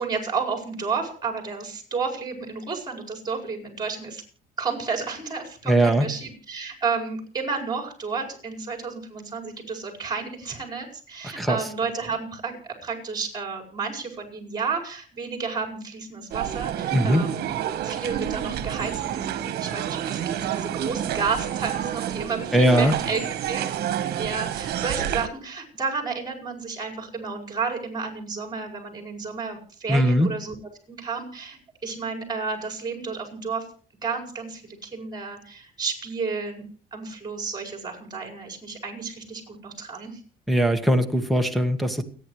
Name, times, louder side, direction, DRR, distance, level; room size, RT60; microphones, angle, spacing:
voice 1, 0.0-4.2 4.6-17.5 17.8-23.2 23.5-30.6 30.9-33.7 34.0-36.6 36.9-40.2, right 5 dB, 25° right, 0 dB, 5.2 m, -31 dB
voice 2, 5.7-6.1 11.2-11.6 16.9-17.3 22.5-22.9 29.9-30.3 40.5-42.0, right 1 dB, ahead, 3 dB, 1.5 m, -20 dB
sound 1, 16.3-25.3, right 10 dB, 70° right, 1.3 m, -29 dB
29.5 x 9.9 x 3.2 m, 0.41 s
cardioid pair, 110°, 17 cm